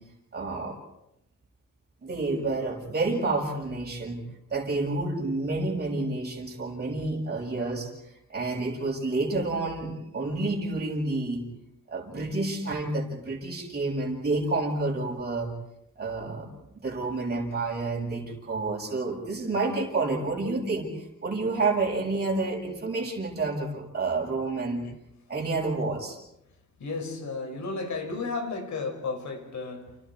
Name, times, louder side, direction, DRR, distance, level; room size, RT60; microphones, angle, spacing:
voice 1, 0.3-0.8 2.0-4.2 4.5-7.9 8.3-11.4 11.9-15.5 16.0-16.5 16.8-24.8 25.3-26.2, right 3 dB, 35° right, -2 dB, 7.2 m, -29 dB
voice 2, 26.8-30.0, left 3 dB, 70° left, 5 dB, 5.9 m, -33 dB
30.0 x 29.5 x 4.8 m, 0.82 s
wide cardioid pair, 145°, 29 cm